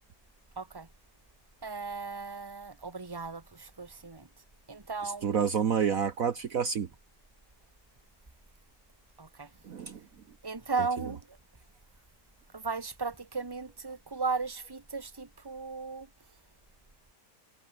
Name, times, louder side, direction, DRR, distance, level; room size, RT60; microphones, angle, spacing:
voice 1, 0.6-0.9 1.6-4.3 4.7-5.4 9.2-9.5 10.4-11.4 12.5-16.1, right 4 dB, 15° right, 1.7 m, -36 dB
voice 2, 5.2-6.9 9.6-10.0, right 7 dB, 55° right, 1.4 m, -28 dB
omnidirectional pair, 1.8 m